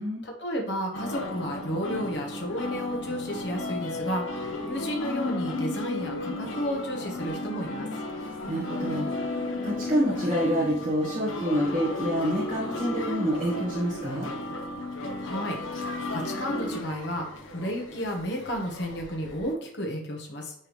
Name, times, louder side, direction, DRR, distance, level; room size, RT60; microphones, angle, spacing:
voice 1, 0.2-7.9 15.2-17.3 17.5-20.5, equal, 60° left, 0 dB, 1.3 m, -32 dB
sound 1, 0.9-19.5, left 2 dB, 85° left, 0.9 m, -34 dB
voice 2, 8.2-14.3, equal, 40° right, -7 dB, 1.5 m, -28 dB
9.5 x 3.5 x 3.2 m, 0.66 s
head